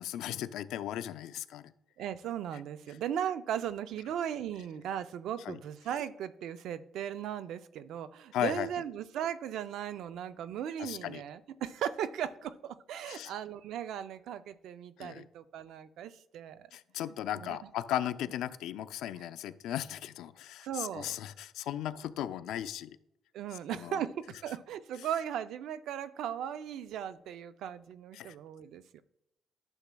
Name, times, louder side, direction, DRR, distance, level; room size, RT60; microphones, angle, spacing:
voice 1, 0.0-1.7 2.5-2.6 5.5-5.6 8.3-8.7 10.8-11.2 13.1-13.3 15.0-15.3 16.7-23.0 23.8-24.0 28.1-28.3, left 11 dB, 90° left, 13 dB, 0.4 m, -36 dB
voice 2, 2.0-16.7 17.4-17.6 20.6-21.2 23.3-29.0, right 9 dB, 80° right, 13 dB, 0.4 m, -37 dB
11.5 x 7.0 x 2.3 m, 0.82 s
cardioid pair, 100°, 0 cm